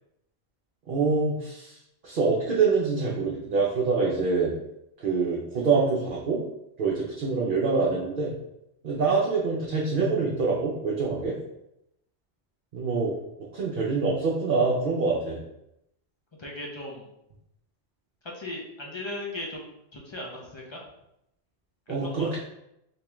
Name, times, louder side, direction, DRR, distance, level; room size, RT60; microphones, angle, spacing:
voice 1, 0.9-1.8 2.0-4.5 5.0-6.4 6.8-8.4 8.8-11.4 12.7-13.1 13.5-15.4 21.9-22.4, right 4 dB, 55° right, -4 dB, 0.7 m, -25 dB
voice 2, 16.4-17.1 18.2-19.6 19.9-20.9 22.0-22.4, left 1 dB, 35° left, -3 dB, 0.5 m, -37 dB
3.4 x 2.9 x 3.0 m, 0.83 s
omnidirectional pair, 1.1 m